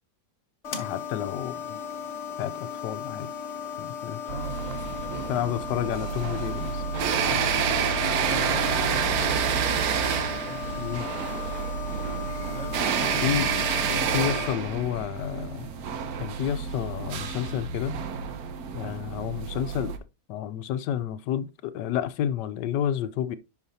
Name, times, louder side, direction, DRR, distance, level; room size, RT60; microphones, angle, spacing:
sound 1, 0.6-14.5, left 8 dB, 50° left, 1.1 m, -36 dB
voice 1, 0.8-1.8 2.4-3.3 3.8-4.2 5.3-6.8 7.3-7.4 10.8-11.1 13.2-13.5 13.9-15.7 16.2-18.0 18.7-19.9 20.3-23.4, left 10 dB, 85° left, 1.2 m, -30 dB
voice 2, 4.2-5.5 8.2-11.0 12.5-14.4 18.8-19.0, right 1 dB, 35° right, 0.6 m, -43 dB
sound 2, 4.3-20.0, right 7 dB, 65° right, 1.2 m, -29 dB
sound 3, 12.9-19.1, left 4 dB, 15° left, 1.6 m, -48 dB
10.5 x 4.8 x 2.7 m
omnidirectional pair, 1.8 m